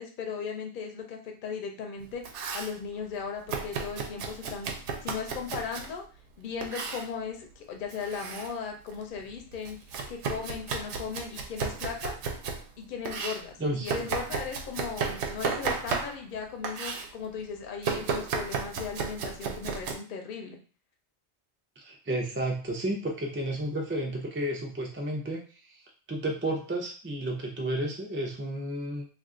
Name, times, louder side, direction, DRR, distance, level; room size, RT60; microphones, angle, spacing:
voice 1, 0.0-4.7 5.0-6.0 6.4-9.8 10.1-12.2 12.8-20.6, left 6 dB, 55° left, 3 dB, 0.7 m, -37 dB
Domestic sounds home sounds, 2.0-2.8 3.5-5.9 6.6-7.1 7.9-8.5 8.9-12.6 13.0-16.4 16.6-17.1 17.8-19.9, right 5 dB, 90° right, 0.9 m, -34 dB
voice 2, 13.6-14.1 21.8-25.8 26.1-29.1, right 1 dB, 20° right, 0 dB, 0.3 m, -32 dB
2.4 x 2.4 x 3.7 m, 0.38 s
omnidirectional pair, 1.1 m